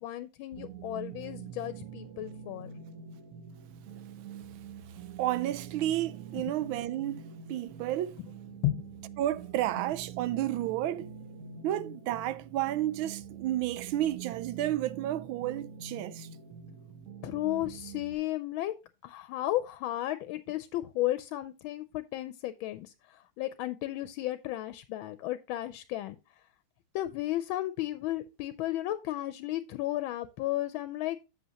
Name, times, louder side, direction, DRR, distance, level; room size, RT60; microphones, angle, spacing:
voice 1, 0.0-2.7 8.2-8.3 8.6-8.9 17.2-18.7 19.0-26.2 26.9-31.3, left 15 dB, 85° left, 1.4 m, -34 dB
sound 1, 0.5-18.1, right 7 dB, 55° right, 1.0 m, -45 dB
voice 2, 5.2-7.2 7.5-8.2 9.2-11.1 11.6-16.3, right 13 dB, 85° right, 1.4 m, -31 dB
7.9 x 7.8 x 2.9 m
omnidirectional pair, 2.2 m